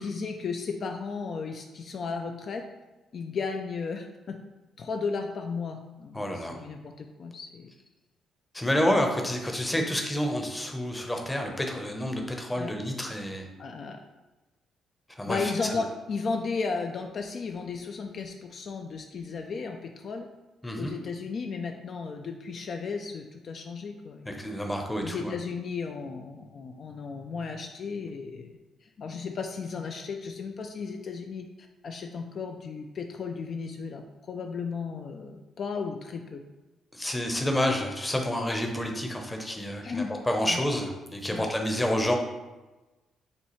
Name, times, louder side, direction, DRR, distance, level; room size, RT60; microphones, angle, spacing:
voice 1, 0.0-2.6 3.1-4.4 4.8-7.7 9.7-9.8 12.6-12.7 13.6-14.0 15.3-20.3 20.7-24.5 25.0-31.5 31.8-36.4 39.8-40.1 40.4-40.6 41.3-41.5, left 5 dB, 55° left, 4 dB, 0.3 m, -35 dB
voice 2, 6.1-6.6 8.5-13.5 15.2-15.8 20.6-20.9 24.3-25.3 36.9-42.2, left 1 dB, 10° left, 2 dB, 0.7 m, -29 dB
6.7 x 2.3 x 3.0 m, 1.1 s
cardioid pair, 90°, 0 cm